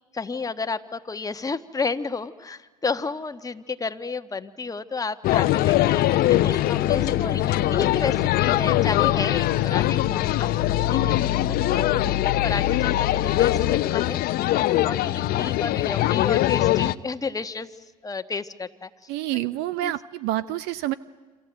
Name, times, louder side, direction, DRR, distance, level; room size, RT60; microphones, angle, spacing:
voice 1, 0.1-6.0 6.3-10.5 10.9-12.1 12.4-14.2 14.6-17.7 18.0-18.9 19.8-19.9, left 4 dB, 20° left, 9 dB, 1.3 m, -31 dB
sound 1, 5.2-16.9, left 15 dB, 55° left, 0.9 m, -22 dB
sound 2, 6.8-13.8, left 10 dB, 80° left, 1.0 m, -31 dB
voice 2, 19.1-20.9, right 15 dB, 60° right, 16 dB, 0.8 m, -28 dB
28.0 x 26.0 x 8.0 m, 1.4 s
hypercardioid pair, 75°, 19 cm